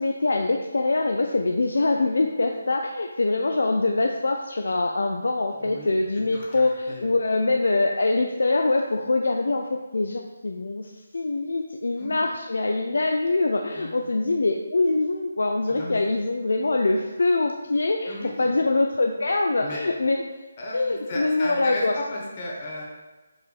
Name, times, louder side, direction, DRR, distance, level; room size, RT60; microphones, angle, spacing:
voice 1, 0.0-20.2 20.7-21.9, left 2 dB, 60° left, 3 dB, 0.3 m, -24 dB
voice 2, 5.5-7.1 12.0-12.2 13.7-14.0 15.8-16.0 18.0-18.5 19.6-19.9 20.6-22.8, left 1 dB, 30° left, -3 dB, 1.1 m, -35 dB
4.8 x 4.5 x 2.3 m, 1.1 s
figure-of-eight pair, 150°, 0 cm